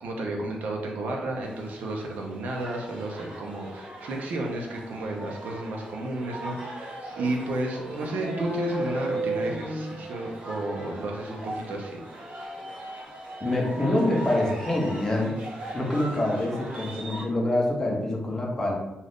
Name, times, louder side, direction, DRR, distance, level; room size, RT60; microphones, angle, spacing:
voice 1, 0.0-12.0, right 2 dB, 90° right, 0 dB, 0.6 m, -32 dB
sound 1, 1.4-17.2, right 1 dB, 55° right, 0.9 m, -40 dB
sound 2, 8.0-10.6, right 1 dB, 45° left, 0.8 m, -31 dB
voice 2, 13.4-15.3 15.7-18.7, left 1 dB, 20° left, -1 dB, 0.6 m, -26 dB
2.6 x 2.4 x 3.4 m, 0.96 s
wide cardioid pair, 160°, 3 cm